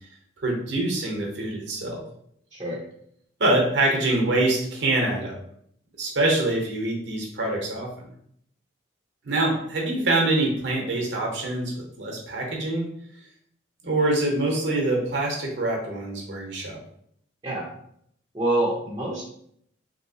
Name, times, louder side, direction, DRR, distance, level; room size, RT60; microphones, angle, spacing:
voice 1, 0.4-2.0 3.4-5.4 6.0-7.9 9.2-12.9 13.8-16.8, right 2 dB, 60° right, 0 dB, 0.7 m, -25 dB
voice 2, 2.5-2.8 17.4-17.7 18.3-19.2, right 1 dB, 20° right, -6 dB, 0.5 m, -26 dB
3.2 x 2.7 x 2.7 m, 0.69 s
head